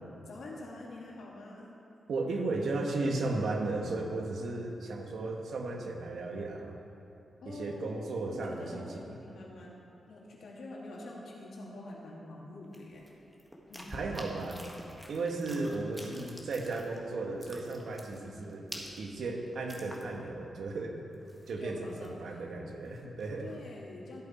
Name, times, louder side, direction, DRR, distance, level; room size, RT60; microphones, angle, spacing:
voice 1, 0.3-1.7 7.4-9.8 10.1-13.1 13.7-13.9 18.0-18.5 21.6-22.4 23.4-24.2, left 2 dB, 80° left, -3 dB, 2.1 m, -46 dB
voice 2, 2.1-6.8 7.4-8.9 13.9-14.7 15.1-21.0 21.5-23.5, right 3 dB, 75° right, 2 dB, 1.3 m, -35 dB
sound 1, 12.7-17.1 17.3-20.4 20.7-20.8 21.1-22.3 22.7-23.6, equal, 5° right, 1.5 m, -48 dB
13.5 x 8.2 x 4.3 m, 2.9 s
cardioid pair, 95°, 0 cm